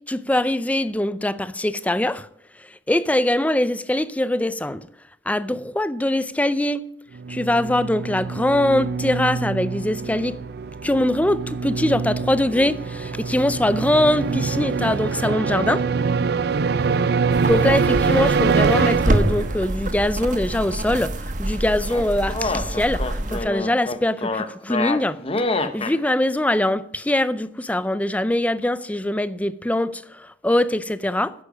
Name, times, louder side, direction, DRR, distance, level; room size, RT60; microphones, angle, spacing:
voice 1, 0.1-2.2 2.9-4.8 5.3-6.8 7.3-10.4 10.8-15.8 17.5-21.1 21.4-23.0 23.3-25.2 25.6-30.0 30.4-31.3, left 1 dB, 10° left, 0.5 m, -22 dB
sound 1, 7.1-19.8, right 5 dB, 65° right, 0.5 m, -24 dB
sound 2, 17.3-23.4, right 1 dB, 50° right, 1.2 m, -26 dB
sound 3, 21.9-26.0, left 3 dB, 35° left, 0.9 m, -26 dB
10.5 x 8.5 x 6.1 m
head